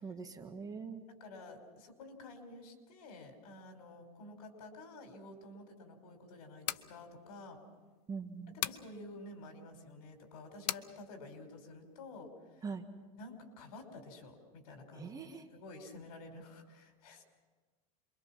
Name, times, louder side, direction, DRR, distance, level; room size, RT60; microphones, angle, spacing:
voice 1, 0.0-1.0 8.1-8.6 12.6-12.9 14.9-15.5, right 5 dB, 20° right, 6 dB, 1.6 m, -43 dB
voice 2, 1.1-7.6 8.5-12.6 13.2-15.2 15.5-17.2, left 2 dB, 70° left, 5 dB, 5.4 m, -51 dB
sound 1, 6.5-6.9 8.6-8.9 10.7-10.9, left 13 dB, 90° left, 0.7 m, -36 dB
27.5 x 23.5 x 6.0 m, 1.4 s
supercardioid pair, 140°, 20 cm